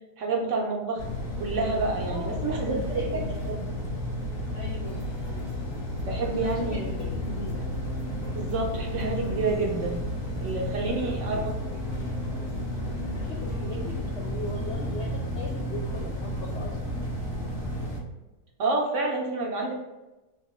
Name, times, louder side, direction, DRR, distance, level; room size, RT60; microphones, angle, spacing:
voice 1, 0.2-1.0 1.4-3.6 6.0-6.9 8.3-10.0 10.4-11.6 18.6-19.8, right 3 dB, 65° right, 0 dB, 0.8 m, -29 dB
sound 1, 1.0-18.0, left 1 dB, 90° left, 1.6 m, -32 dB
voice 2, 2.0-3.3 4.5-5.0 6.2-7.6 10.8-11.1 13.1-16.8, left 2 dB, 70° left, -2 dB, 0.6 m, -39 dB
sound 2, 4.8-16.6, left 1 dB, 45° left, 0.9 m, -42 dB
3.5 x 2.9 x 3.0 m, 1.1 s
omnidirectional pair, 1.6 m